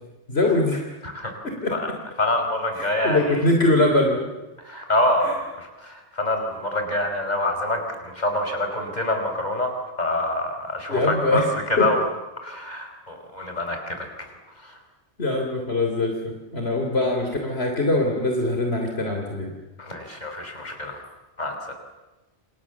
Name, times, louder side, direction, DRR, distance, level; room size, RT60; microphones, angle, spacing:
voice 1, 0.3-0.9 1.4-1.8 2.7-4.3 5.2-5.3 10.9-11.5 11.8-11.9 13.7-13.8 15.2-19.5, left 2 dB, 60° left, 2 dB, 3.6 m, -23 dB
voice 2, 2.2-3.2 4.6-9.7 10.0-11.4 11.8-12.0 12.4-14.1 14.6-14.7 19.8-21.0 21.4-21.6, left 1 dB, 40° left, 4 dB, 5.5 m, -26 dB
29.0 x 28.5 x 7.3 m, 1.1 s
omnidirectional pair, 1.2 m